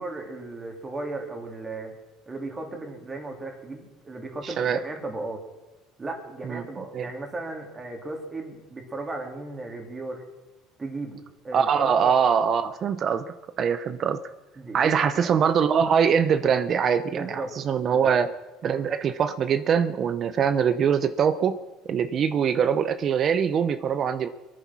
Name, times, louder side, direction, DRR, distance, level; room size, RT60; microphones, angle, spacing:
voice 1, 0.0-1.9 2.3-5.4 6.0-10.2 10.8-12.2 14.6-15.3 17.1-17.5 17.8-18.1, right 2 dB, 20° right, 2 dB, 3.2 m, -36 dB
voice 2, 4.4-4.8 6.5-6.6 6.9-7.1 11.5-13.2 13.6-14.2 14.7-18.3 18.6-21.6 21.9-24.3, right 7 dB, 40° right, 11 dB, 0.7 m, -23 dB
23.0 x 9.4 x 6.1 m, 1.1 s
cardioid pair, 120°, 0 cm